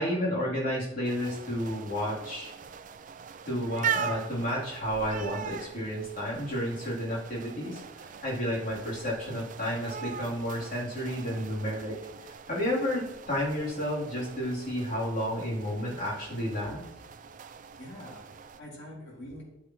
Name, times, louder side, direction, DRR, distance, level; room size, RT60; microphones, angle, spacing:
voice 1, 0.0-2.5 3.4-7.8 8.2-12.0 12.2-16.8, equal, 45° left, -6 dB, 3.3 m, -31 dB
sound 1, 1.0-18.6, right 7 dB, 40° right, 0.4 m, -41 dB
voice 2, 17.8-19.4, equal, 60° left, -3 dB, 2.8 m, -45 dB
12.0 x 7.5 x 3.1 m, 0.91 s
head